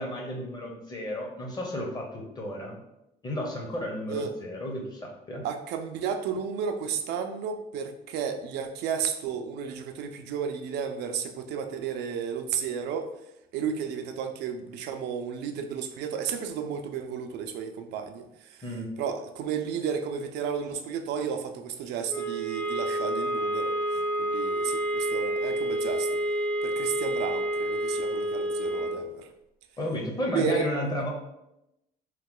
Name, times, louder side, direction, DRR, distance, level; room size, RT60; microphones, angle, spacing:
voice 1, 0.0-2.8 3.2-5.5 18.6-18.9 29.8-31.1, left 1 dB, 25° left, 0 dB, 0.9 m, -33 dB
voice 2, 5.4-13.1 13.5-18.6 19.0-26.2 26.6-29.3 30.3-30.7, right 7 dB, 80° right, 6 dB, 0.4 m, -33 dB
sound 1, 22.1-29.1, right 1 dB, 10° left, 0.3 m, -29 dB
3.1 x 2.1 x 3.7 m, 0.86 s
cardioid pair, 110°, 17 cm